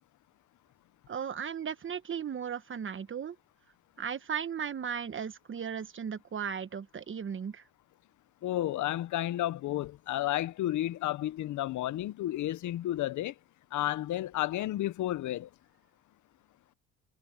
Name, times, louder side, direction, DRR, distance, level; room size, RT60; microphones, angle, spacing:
voice 1, 1.1-3.3 4.0-7.6, right 7 dB, 40° right, 1.1 m, -36 dB
voice 2, 8.4-13.3 13.7-15.5, left 14 dB, 75° left, 0.8 m, -32 dB
cardioid pair, 90°, 30 cm